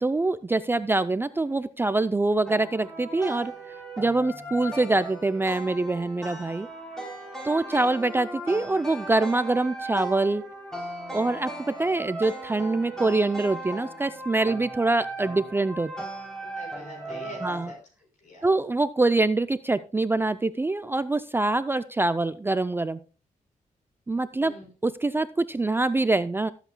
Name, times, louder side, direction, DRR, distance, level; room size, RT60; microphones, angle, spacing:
voice 1, 0.0-3.5 4.0-6.7 7.4-10.4 11.1-15.9 17.4-17.7 18.4-23.0 24.1-24.5 24.8-26.5, right 2 dB, 15° right, 13 dB, 0.4 m, -25 dB
sound 1, 2.5-17.7, right 1 dB, 5° left, 3.2 m, -37 dB
voice 2, 16.4-17.8 18.2-18.5 24.4-24.7, left 1 dB, 60° left, 1 dB, 5.8 m, -44 dB
18.5 x 8.1 x 2.2 m, 0.36 s
cardioid pair, 115°, 14 cm